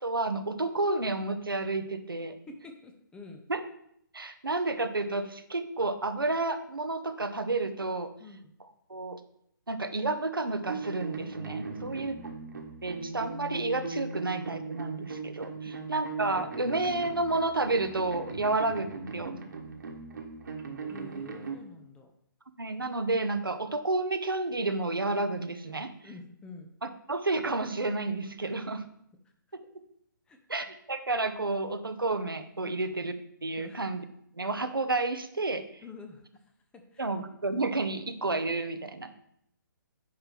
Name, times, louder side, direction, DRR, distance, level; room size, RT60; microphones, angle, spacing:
voice 1, 0.0-2.4 3.5-3.6 4.1-8.1 8.6-9.2 9.7-12.2 12.8-18.9 19.1-19.3 22.6-26.2 26.8-28.8 30.5-33.1 33.4-34.1 34.3-35.6 37.0-39.1, right 2 dB, 80° right, 9 dB, 0.8 m, -31 dB
voice 2, 2.5-3.4 8.2-8.5 11.7-12.4 15.6-15.9 20.9-22.1 26.0-26.7 28.4-28.5 29.2-29.3 30.3-30.4 32.6-32.9 33.6-33.8 35.8-36.4 36.7-37.1, left 2 dB, 10° left, 4 dB, 0.6 m, -48 dB
sound 1, 10.6-21.6, right 4 dB, 60° right, 1.5 m, -39 dB
9.4 x 3.3 x 5.9 m, 0.72 s
figure-of-eight pair, 135°, 11 cm